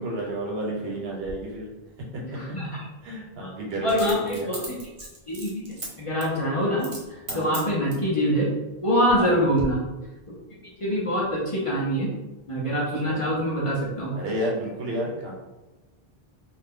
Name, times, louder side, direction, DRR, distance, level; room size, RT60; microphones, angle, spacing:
voice 1, 0.0-1.7 2.1-2.2 3.0-4.5 7.3-7.6 9.2-9.4 13.0-13.2 14.1-15.3, right 1 dB, 75° right, -3 dB, 1.1 m, -31 dB
Coin (dropping), 1.2-1.4 3.9-5.9 6.2-6.4 6.8-7.0 7.3-8.1 8.7-9.3 9.6-9.7, right 2 dB, 40° right, 0.6 m, -37 dB
voice 2, 3.8-4.8 5.3-6.9 7.3-8.5 8.8-9.8 10.8-12.1 12.5-14.1, equal, 35° left, -6 dB, 0.7 m, -24 dB
2.6 x 2.2 x 3.5 m, 1.1 s
omnidirectional pair, 1.0 m